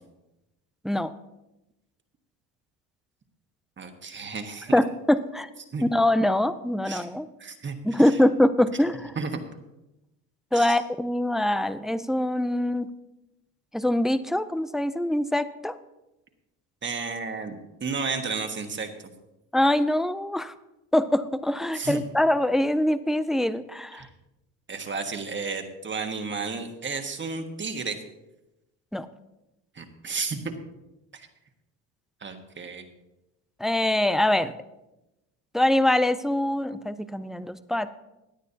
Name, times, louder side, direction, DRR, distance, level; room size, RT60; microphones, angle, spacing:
voice 1, 3.8-4.8 5.7-5.8 6.8-7.1 7.4-7.7 9.1-9.4 10.5-10.8 16.8-18.9 21.7-22.0 23.9-24.1 24.7-28.0 29.7-30.5 31.1-31.3 32.2-32.8, right 4 dB, 25° right, 5 dB, 1.4 m, -32 dB
voice 2, 4.7-5.5 5.8-7.3 7.8-9.2 10.5-12.9 13.7-15.7 19.5-20.5 20.9-24.1 28.9-29.1 33.6-34.5 35.5-37.9, left 1 dB, ahead, 13 dB, 0.3 m, -23 dB
17.0 x 10.0 x 2.8 m, 0.95 s
supercardioid pair, 95°, 42 cm